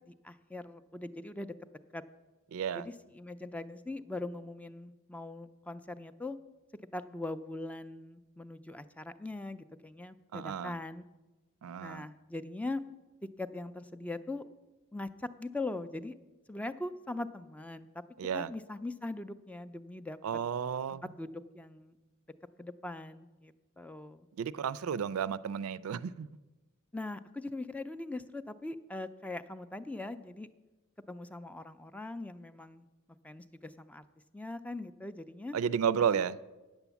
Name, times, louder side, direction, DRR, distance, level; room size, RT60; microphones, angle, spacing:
voice 1, 0.0-1.5 1.9-2.0 2.7-6.4 6.9-11.0 11.8-12.8 13.4-14.4 14.9-16.1 16.5-18.0 18.3-20.2 20.9-21.9 22.6-24.3 26.9-30.5 31.1-32.9 33.2-34.0 34.3-35.6 36.1-36.2, left 2 dB, 5° left, 0.3 m, -41 dB
voice 2, 2.5-2.8 10.3-10.7 11.6-12.1 18.2-18.5 20.2-21.0 24.4-26.3 35.5-36.4, right 7 dB, 85° right, 0.4 m, -32 dB
9.0 x 7.1 x 6.9 m
head